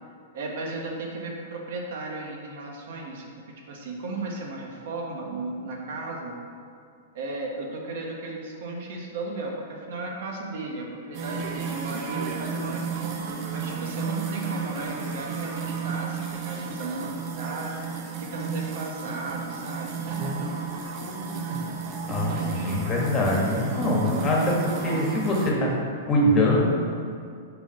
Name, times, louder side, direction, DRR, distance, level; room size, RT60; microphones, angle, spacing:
voice 1, 0.3-6.4 7.1-13.1 13.5-17.8 18.2-20.6 22.3-22.7, right 2 dB, 65° right, 0 dB, 1.2 m, -35 dB
sound 1, 11.1-25.5, right 5 dB, 40° right, 0.8 m, -32 dB
voice 2, 22.1-25.7 26.0-26.7, left 1 dB, 20° left, -3 dB, 1.5 m, -23 dB
5.8 x 4.4 x 5.7 m, 2.3 s
hypercardioid pair, 145°, 0 cm